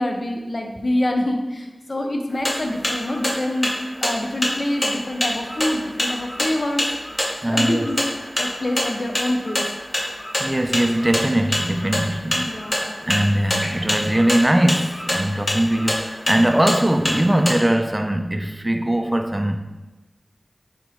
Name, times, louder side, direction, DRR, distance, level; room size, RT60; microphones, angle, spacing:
voice 1, 0.0-3.7 4.0-6.9 7.5-8.0 8.4-9.6 12.3-13.0, left 1 dB, 55° left, 0.6 m, -26 dB
sound 1, 2.3-17.5, equal, 35° left, 0.9 m, -25 dB
voice 2, 7.4-7.9 10.4-12.5 13.1-19.6, right 1 dB, 20° right, 0.4 m, -20 dB
4.3 x 3.9 x 3.0 m
wide cardioid pair, 50°, 0 cm